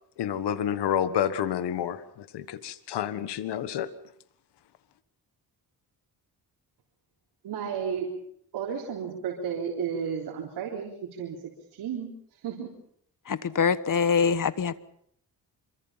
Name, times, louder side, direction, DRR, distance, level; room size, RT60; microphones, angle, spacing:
voice 1, 0.2-3.9, left 9 dB, 90° left, 13 dB, 1.6 m, -29 dB
voice 2, 7.4-8.1 8.5-11.4 11.7-12.1 12.4-12.7, right 7 dB, 90° right, -2 dB, 3.9 m, -32 dB
voice 3, 13.3-14.8, left 6 dB, 50° left, 15 dB, 1.4 m, -24 dB
26.5 x 24.0 x 5.8 m, 0.68 s
cardioid pair, 75°, 40 cm